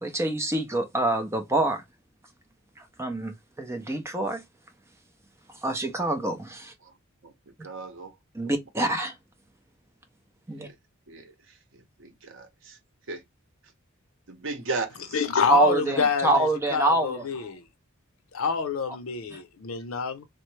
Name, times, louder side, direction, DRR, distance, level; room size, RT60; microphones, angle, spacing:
voice 1, 0.0-1.8 3.0-4.4 5.6-6.7 8.3-9.2 10.5-10.7 15.5-17.3 19.3-19.4, right 2 dB, 15° right, 0.6 m, -26 dB
voice 2, 7.2-8.2 8.4-8.5 10.5-10.8 11.1-12.8 13.1-13.2 14.3-15.3, right 3 dB, 65° right, 0.8 m, -37 dB
voice 3, 15.1-17.6 18.3-20.3, left 5 dB, 85° left, 0.6 m, -27 dB
3.2 x 2.1 x 3.1 m
head